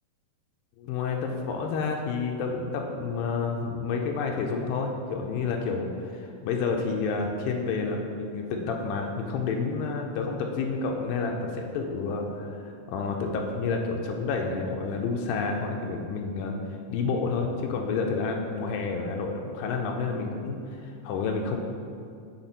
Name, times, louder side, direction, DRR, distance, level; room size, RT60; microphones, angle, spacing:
voice 1, 0.8-16.6 16.9-21.6, left 4 dB, 85° left, 2 dB, 2.3 m, -29 dB
5.8 x 4.2 x 4.0 m, 2.3 s
omnidirectional pair, 4.0 m